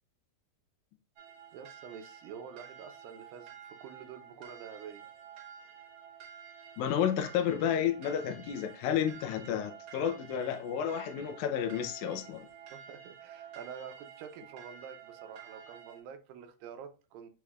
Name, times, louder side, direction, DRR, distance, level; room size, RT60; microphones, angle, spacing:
sound 1, 1.2-16.0, right 8 dB, 65° right, 1.6 m, -51 dB
voice 1, 1.5-5.1 12.7-17.3, right 7 dB, 80° right, 2.4 m, -47 dB
voice 2, 6.8-12.4, left 9 dB, 80° left, 1.7 m, -31 dB
6.2 x 3.2 x 2.3 m
omnidirectional pair, 4.1 m